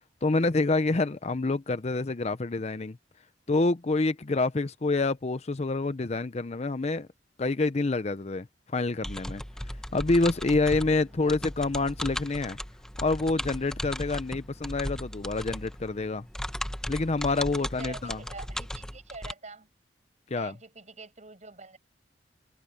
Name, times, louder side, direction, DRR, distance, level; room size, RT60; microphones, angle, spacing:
voice 1, 0.2-3.0 3.5-7.1 7.4-12.6 13.0-16.2 16.9-18.2 20.3-20.5, left 3 dB, 40° left, 0.6 m, -27 dB
sound 1, 9.0-19.3, equal, 5° left, 0.8 m, -37 dB
voice 2, 17.6-19.7 20.3-21.8, right 3 dB, 40° right, 7.5 m, -45 dB
open air
head